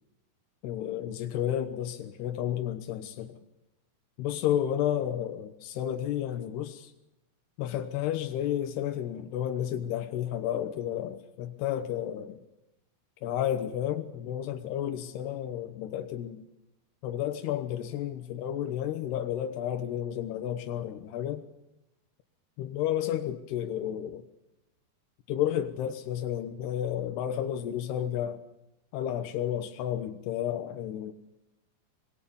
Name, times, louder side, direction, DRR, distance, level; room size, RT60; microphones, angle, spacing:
voice 1, 0.6-3.4 4.2-6.9 7.6-12.4 13.2-16.5 17.0-21.4 22.6-24.2 25.3-28.4 28.9-31.1, left 11 dB, 90° left, 3.2 m, -31 dB
25.0 x 22.5 x 7.1 m
omnidirectional pair, 4.6 m